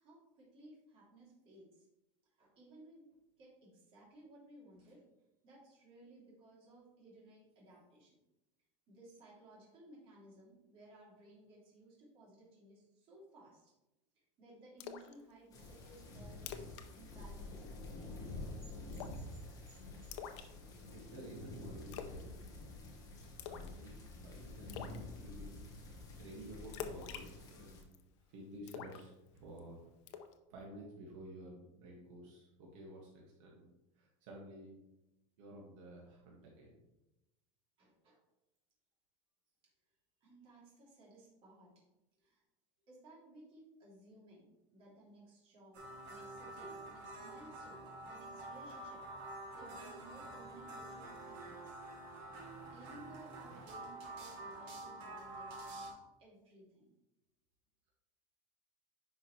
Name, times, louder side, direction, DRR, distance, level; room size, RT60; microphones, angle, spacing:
voice 1, 0.0-1.9 2.4-3.1 3.4-5.0 5.4-8.2 8.9-13.7 14.1-16.7 16.9-18.2 27.5-27.7 37.8-38.2 40.2-41.7 42.2-42.4 42.9-49.0 49.3-51.8 52.7-56.9, right 2 dB, 35° right, -4 dB, 2.9 m, -59 dB
Splash splatter, 14.8-15.1 15.5-15.6 16.0-16.1 16.4-16.9 17.1-17.3 17.6-18.0 18.9-19.3 20.1-21.0 21.9-22.2 22.5-22.9 23.4-23.8 24.1-24.2 24.7-25.0 26.7-28.0 28.7-29.6 30.1-30.3, left 9 dB, 65° left, 0.8 m, -46 dB
sound 1, 15.5-27.8, left 2 dB, 20° left, 1.4 m, -49 dB
voice 2, 20.9-22.6 23.5-25.6 26.2-28.0 28.3-29.9 30.5-34.7 35.4-36.7 53.5-53.7, right 1 dB, 70° right, -2 dB, 2.0 m, -52 dB
sound 2, 45.7-55.9, right 2 dB, 50° right, 2.6 m, -48 dB
9.9 x 5.5 x 3.2 m, 0.95 s
supercardioid pair, 170°, 17 cm